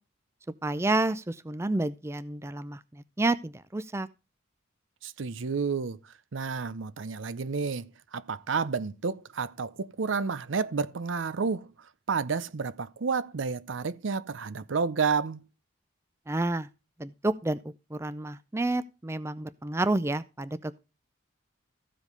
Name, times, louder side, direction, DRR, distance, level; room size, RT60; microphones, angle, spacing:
voice 1, 0.6-2.8 3.2-4.1 16.3-16.7 17.0-17.6 17.9-20.8, right 2 dB, 15° right, 0.4 m, -29 dB
voice 2, 5.0-15.4, right 5 dB, 75° right, 0.6 m, -31 dB
14.5 x 5.1 x 5.3 m
head